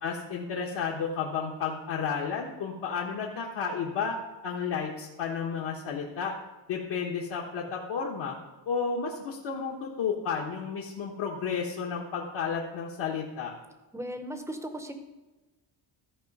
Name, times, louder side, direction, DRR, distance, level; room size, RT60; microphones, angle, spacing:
voice 1, 0.0-6.3 6.7-8.3 8.7-13.5, left 6 dB, 60° left, -2 dB, 1.2 m, -32 dB
voice 2, 13.9-14.9, equal, 5° right, 7 dB, 0.7 m, -37 dB
14.0 x 4.9 x 5.3 m, 1.2 s
cardioid pair, 165°, 47 cm